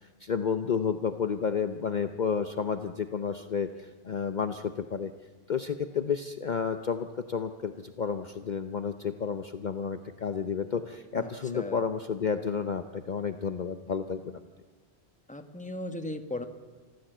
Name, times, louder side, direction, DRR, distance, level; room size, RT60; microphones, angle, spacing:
voice 1, 0.2-5.1 5.5-14.4, left 6 dB, 45° left, 9 dB, 0.9 m, -31 dB
voice 2, 15.3-16.5, left 1 dB, 5° left, 7 dB, 1.3 m, -37 dB
26.0 x 15.0 x 7.9 m, 1.3 s
omnidirectional pair, 1.1 m